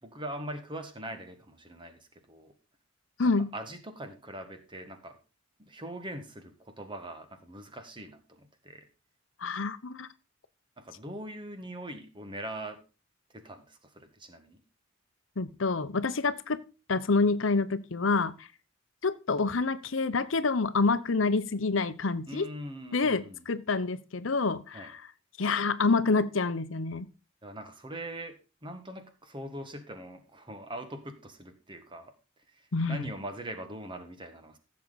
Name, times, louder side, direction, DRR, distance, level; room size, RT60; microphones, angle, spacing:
voice 1, 0.0-2.5 3.2-5.2 5.6-8.9 10.8-12.8 13.3-14.6 22.3-23.5 24.7-24.9 27.4-32.1 32.5-34.6, right 1 dB, 25° right, 1.7 m, -42 dB
voice 2, 3.2-3.5 9.4-10.1 15.4-16.6 16.9-18.5 19.0-22.5 22.9-25.0 25.4-27.1 32.7-33.0, left 3 dB, 75° left, 0.8 m, -27 dB
15.0 x 7.3 x 4.1 m
head